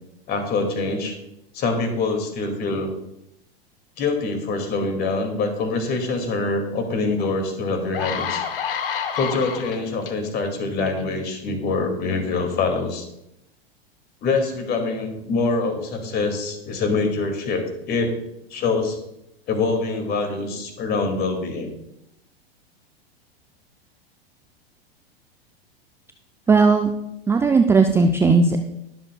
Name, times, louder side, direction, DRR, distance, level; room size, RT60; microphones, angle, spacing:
voice 1, 0.3-1.2 1.5-2.9 4.0-8.4 9.1-13.1 14.2-18.1 18.5-19.0 19.5-21.7, left 3 dB, 30° left, 5 dB, 2.2 m, -24 dB
sound 1, 7.2-7.3 7.7-10.1 10.8-11.0, left 7 dB, 65° left, 1.1 m, -28 dB
voice 2, 26.5-26.9 27.3-28.6, right 4 dB, 10° right, 6 dB, 0.4 m, -16 dB
21.0 x 7.5 x 2.3 m, 0.83 s
figure-of-eight pair, 90°, 30 cm